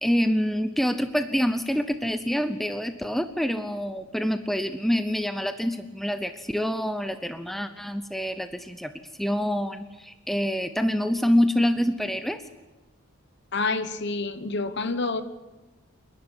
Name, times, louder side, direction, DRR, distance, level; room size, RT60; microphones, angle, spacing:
voice 1, 0.0-8.9 9.2-12.4, equal, ahead, 9 dB, 0.7 m, -26 dB
voice 2, 13.5-15.2, left 3 dB, 50° left, 11 dB, 1.3 m, -28 dB
28.5 x 11.5 x 9.7 m, 1.1 s
head